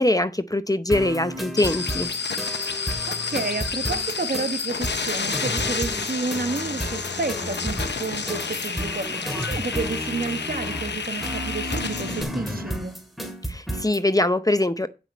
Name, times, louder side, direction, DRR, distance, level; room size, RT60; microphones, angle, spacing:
voice 1, 0.0-2.1 13.5-14.9, left 1 dB, 20° left, 0.6 m, -22 dB
sound 1, 0.9-14.0, equal, ahead, 2.1 m, -32 dB
sound 2, 1.6-12.2, left 5 dB, 85° left, 0.8 m, -30 dB
voice 2, 3.1-12.9, right 3 dB, 55° right, 1.1 m, -31 dB
8.8 x 6.0 x 5.1 m
wide cardioid pair, 50°, 18 cm